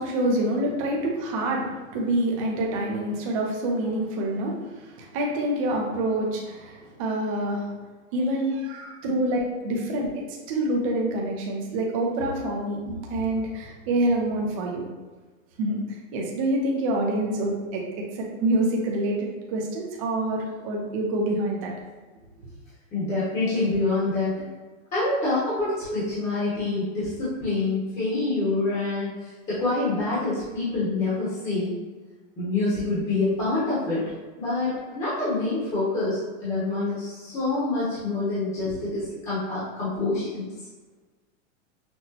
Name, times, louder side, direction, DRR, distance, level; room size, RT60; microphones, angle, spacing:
voice 1, 0.0-7.7 8.1-14.8 15.6-15.8 16.1-21.7, right 1 dB, 25° right, -1 dB, 0.5 m, -27 dB
voice 2, 22.9-24.4 24.9-29.1 29.5-31.8 32.4-34.0 34.4-40.5, left 2 dB, 15° left, -11 dB, 1.0 m, -26 dB
5.9 x 2.1 x 2.8 m, 1.3 s
supercardioid pair, 165°, 40 cm